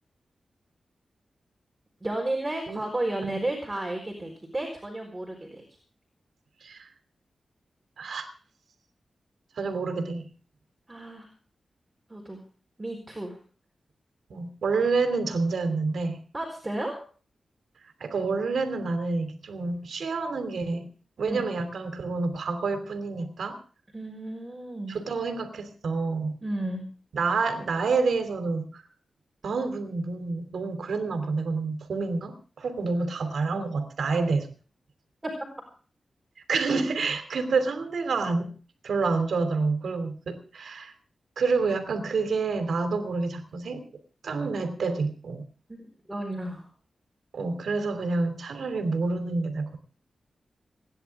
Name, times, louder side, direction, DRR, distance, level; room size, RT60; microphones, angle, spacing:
voice 1, 2.0-5.6 10.9-11.3 12.1-12.4 12.8-13.4 16.3-17.0 21.3-21.5 23.9-25.0 26.4-26.8 46.1-46.7, right 1 dB, 15° right, 0 dB, 4.4 m, -32 dB
voice 2, 8.0-8.3 9.6-10.3 14.3-16.2 18.0-20.8 21.2-23.6 24.9-26.4 27.1-28.8 29.4-34.5 36.5-38.5 38.8-40.9 41.4-43.8 44.2-45.4 47.3-49.8, right 4 dB, 80° right, 8 dB, 3.0 m, -28 dB
28.5 x 10.5 x 3.6 m, 0.40 s
wide cardioid pair, 120°, 0 cm